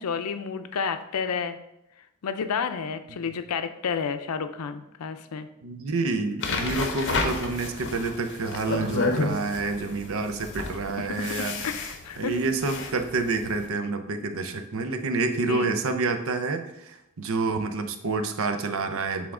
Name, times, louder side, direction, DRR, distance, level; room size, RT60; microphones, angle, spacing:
voice 1, 0.0-1.6 2.2-5.5 11.0-12.4 15.5-15.8, left 6 dB, 90° left, 10 dB, 0.5 m, -31 dB
voice 2, 5.6-11.7 12.2-19.3, right 3 dB, 65° right, 7 dB, 0.6 m, -28 dB
sound 1, 6.4-13.6, left 3 dB, 55° left, 0.8 m, -31 dB
7.0 x 3.6 x 3.7 m, 0.84 s
head